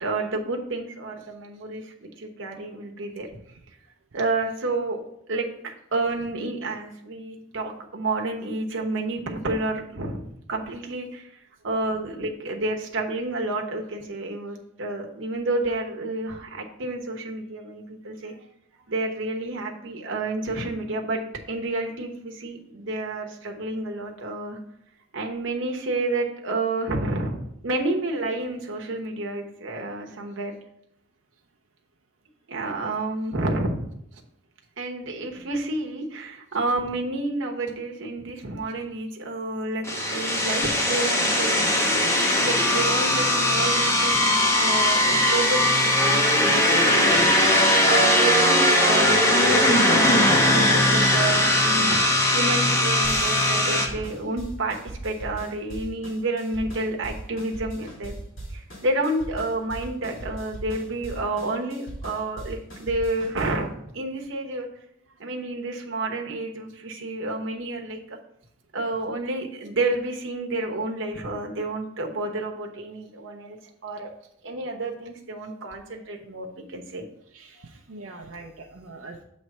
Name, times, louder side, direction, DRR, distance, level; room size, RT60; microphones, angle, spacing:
voice 1, 0.0-3.3 4.1-5.0 5.3-18.3 18.9-21.2 21.5-24.6 25.1-30.5 32.5-33.8 34.8-41.6 42.0-42.1 42.4-47.3 47.9-54.8 55.0-58.1 58.5-64.7 65.2-68.2 68.7-73.6 73.8-74.1 74.4-77.0, right 2 dB, 65° right, 2 dB, 1.0 m, -30 dB
sound 1, 39.8-53.9, left 1 dB, 15° left, 0.9 m, -20 dB
sound 2, 53.0-63.7, right 1 dB, 65° left, 2.6 m, -39 dB
voice 2, 77.3-79.2, right 3 dB, 85° right, 0 dB, 0.6 m, -43 dB
7.2 x 3.2 x 5.3 m, 0.76 s
head